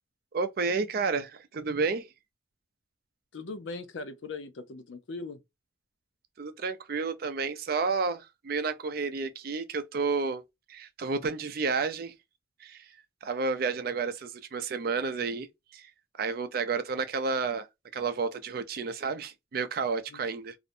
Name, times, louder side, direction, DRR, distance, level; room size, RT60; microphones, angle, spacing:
voice 1, 0.3-2.1 6.4-10.4 10.7-12.1 12.6-12.9 13.2-15.5 15.7-15.9 16.2-17.7 17.9-20.6, right 4 dB, 55° right, 0.4 m, -31 dB
voice 2, 3.3-5.4 20.1-20.2, left 3 dB, 75° left, 0.5 m, -39 dB
2.4 x 2.1 x 2.6 m
head